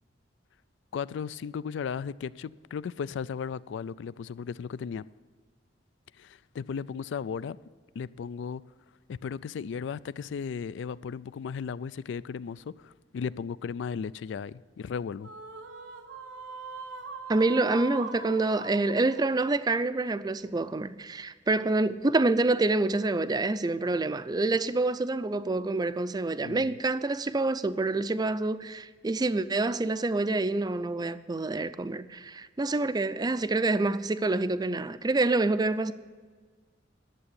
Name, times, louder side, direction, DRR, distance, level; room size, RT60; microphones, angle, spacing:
voice 1, 0.9-5.0 6.2-7.6 8.0-8.6 9.1-15.3 26.4-26.7, left 6 dB, 70° left, 0.3 m, -35 dB
sound 1, 15.2-20.7, right 3 dB, 85° right, 0.9 m, -42 dB
voice 2, 17.3-35.9, right 2 dB, 20° right, 0.4 m, -27 dB
11.5 x 7.7 x 8.1 m
head